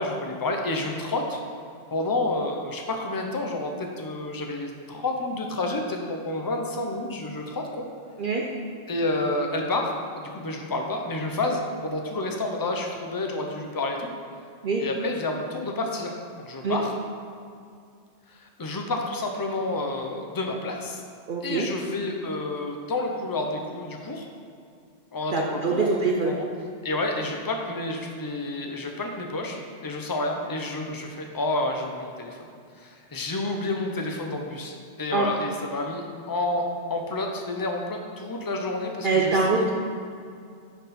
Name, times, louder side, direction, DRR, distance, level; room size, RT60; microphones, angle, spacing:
voice 1, 0.0-1.4 1.9-7.9 8.9-9.8 10.2-14.1 14.8-16.1 16.4-16.9 18.3-21.0 21.4-24.3 25.1-25.9 26.2-26.5 26.8-32.4 32.8-36.6 36.9-39.7, left 2 dB, 25° left, 2 dB, 0.6 m, -29 dB
voice 2, 21.3-21.7 25.3-26.4 35.1-35.4 39.0-39.7, right 3 dB, 55° right, 0 dB, 0.7 m, -24 dB
10.5 x 4.1 x 4.2 m, 2.3 s
omnidirectional pair, 1.2 m